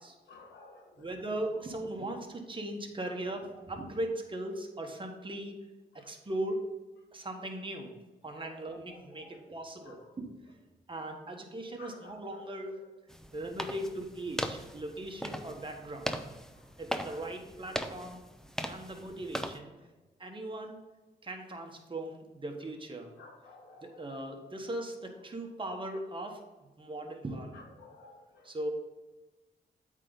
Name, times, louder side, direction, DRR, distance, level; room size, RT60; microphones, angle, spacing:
voice 1, 0.3-1.1 3.2-3.4 5.9-6.0 8.4-9.5 9.8-10.1 11.8-12.5 16.6-16.7 23.2-24.2 27.5-28.5, left 3 dB, 85° left, 1 dB, 1.4 m, -53 dB
voice 2, 1.0-5.6 5.9-6.6 7.1-8.0 8.2-10.3 10.9-12.8 13.3-16.1 16.8-18.2 18.7-19.7 20.2-20.8 21.2-23.2 23.8-26.4 26.8-27.6 28.4-28.7, right 1 dB, 30° right, 2 dB, 1.4 m, -39 dB
sound 1, 13.1-19.6, equal, 5° left, 0.7 m, -39 dB
8.4 x 3.8 x 5.3 m, 1.1 s
supercardioid pair, 50°, 18 cm